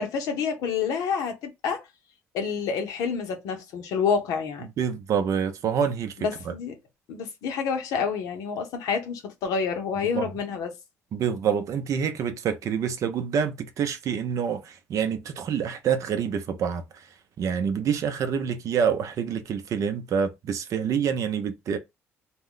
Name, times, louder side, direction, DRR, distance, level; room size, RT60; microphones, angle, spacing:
voice 1, 0.0-1.8 2.3-4.7 6.2-6.7 7.1-10.7, left 6 dB, 80° left, 0.7 m, -28 dB
voice 2, 4.6-6.5 10.0-10.3 11.1-16.8 17.4-21.8, right 7 dB, 60° right, 0.5 m, -27 dB
2.3 x 2.1 x 3.7 m
supercardioid pair, 70°, 6 cm